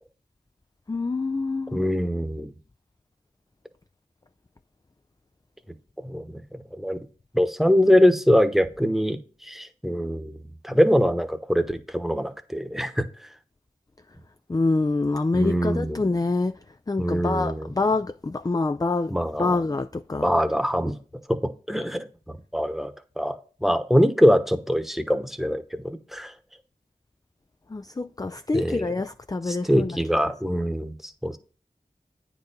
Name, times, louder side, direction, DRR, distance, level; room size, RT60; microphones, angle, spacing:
voice 1, 0.9-1.8 14.5-16.6 16.9-20.3 27.7-30.0 30.2-30.3, left 3 dB, 25° left, 0.4 m, -26 dB
voice 2, 1.7-2.5 6.0-6.4 6.7-7.0 7.3-10.3 10.6-13.0 15.3-16.0 17.0-17.7 19.1-19.6 20.2-21.0 21.3-26.3 28.5-28.9 29.5-31.4, equal, ahead, 1.0 m, -23 dB
9.5 x 4.5 x 5.1 m
wide cardioid pair, 45°, 15 cm